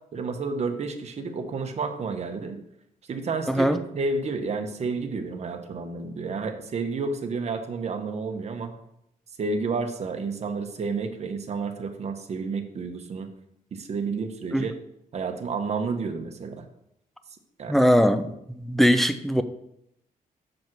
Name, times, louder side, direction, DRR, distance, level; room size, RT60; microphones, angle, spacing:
voice 1, 0.1-2.6 3.1-3.7 3.9-8.7 9.4-13.3 13.7-14.7 15.1-16.7 17.6-17.8, right 4 dB, 50° right, 1.1 m, -30 dB
voice 2, 3.5-3.8 14.5-14.6 17.7-19.4, equal, ahead, 0.6 m, -21 dB
7.4 x 5.2 x 6.0 m
wide cardioid pair, 135°, 15 cm